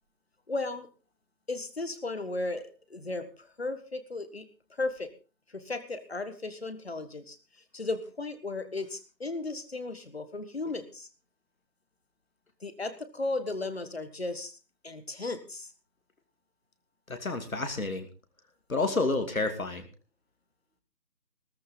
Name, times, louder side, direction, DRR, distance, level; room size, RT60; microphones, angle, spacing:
voice 1, 0.5-0.9 1.5-4.4 4.8-5.1 5.5-7.4 7.7-11.1 12.6-14.5 14.8-15.7, left 2 dB, 40° left, 11 dB, 1.6 m, -35 dB
voice 2, 17.1-18.1 18.7-19.9, left 3 dB, 55° left, 6 dB, 2.7 m, -29 dB
17.0 x 14.0 x 3.9 m, 0.33 s
figure-of-eight pair, 160°, 50 cm